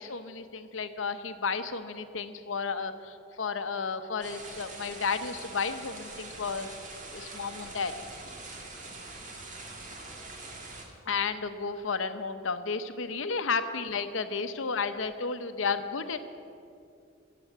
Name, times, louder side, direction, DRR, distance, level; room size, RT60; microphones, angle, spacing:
voice 1, 0.0-6.7 7.1-7.9 11.1-16.2, left 5 dB, 85° left, 10 dB, 0.8 m, -32 dB
sound 1, 4.2-10.8, right 2 dB, 40° right, 1.9 m, -44 dB
15.5 x 7.8 x 7.5 m, 2.5 s
head